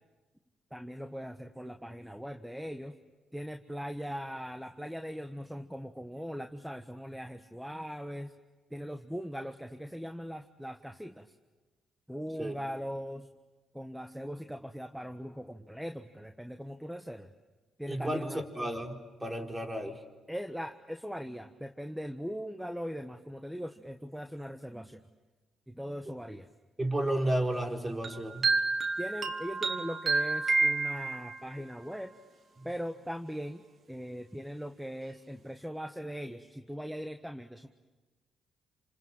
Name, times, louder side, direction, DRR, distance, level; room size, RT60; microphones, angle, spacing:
voice 1, 0.7-2.9 3.3-8.3 8.7-11.3 12.1-13.3 13.7-17.3 17.8-18.4 20.3-25.0 25.7-26.5 29.0-32.1 32.6-37.7, equal, 5° right, 7 dB, 1.4 m, -40 dB
voice 2, 17.9-20.0 26.8-28.5 32.6-32.7, right 1 dB, 20° right, 2 dB, 4.2 m, -32 dB
sound 1, 28.0-31.5, right 3 dB, 55° right, 1.9 m, -29 dB
28.5 x 27.0 x 7.6 m, 1.2 s
hypercardioid pair, 50°, 0 cm